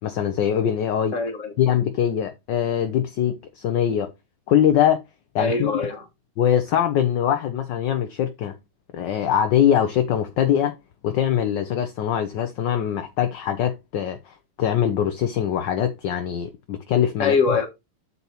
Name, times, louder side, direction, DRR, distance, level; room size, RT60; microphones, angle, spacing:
voice 1, 0.0-1.2 1.6-4.1 4.5-5.0 5.3-5.7 6.4-8.6 8.9-10.7 11.0-17.4, left 9 dB, 65° left, 1.3 m, -22 dB
voice 2, 1.1-1.5 5.4-6.0 17.2-17.7, left 4 dB, 40° left, 1.7 m, -23 dB
8.1 x 6.9 x 2.9 m
omnidirectional pair, 2.4 m